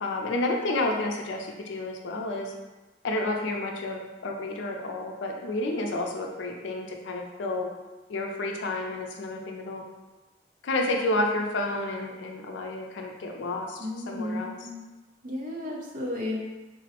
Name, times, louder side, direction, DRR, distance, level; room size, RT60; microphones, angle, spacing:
voice 1, 0.0-2.5 3.0-7.7 8.1-9.8 10.6-13.8 14.1-14.5, left 2 dB, 80° left, 1 dB, 0.4 m, -30 dB
voice 2, 13.8-14.8 15.2-16.4, left 1 dB, 45° right, -1 dB, 0.5 m, -33 dB
3.6 x 2.0 x 2.8 m, 1.1 s
head